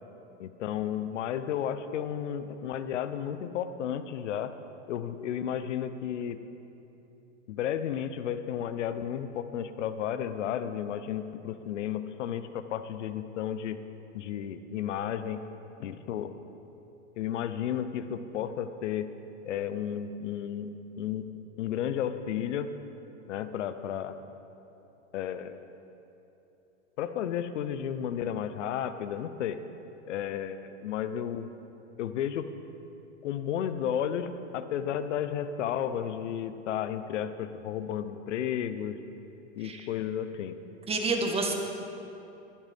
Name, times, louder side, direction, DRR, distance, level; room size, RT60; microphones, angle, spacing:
voice 1, 0.4-4.5 4.9-6.4 7.5-13.8 14.1-15.4 15.8-16.3 17.2-19.1 19.4-21.3 21.6-22.7 23.3-24.1 25.1-25.6 27.0-29.6 30.1-31.5 32.0-32.5 33.2-34.3 34.5-39.0 39.6-40.6, left 9 dB, 70° left, 11 dB, 1.0 m, -33 dB
voice 2, 40.9-41.5, right 3 dB, 15° right, 2 dB, 1.6 m, -28 dB
21.0 x 12.0 x 3.6 m, 2.9 s
hypercardioid pair, 125°, 37 cm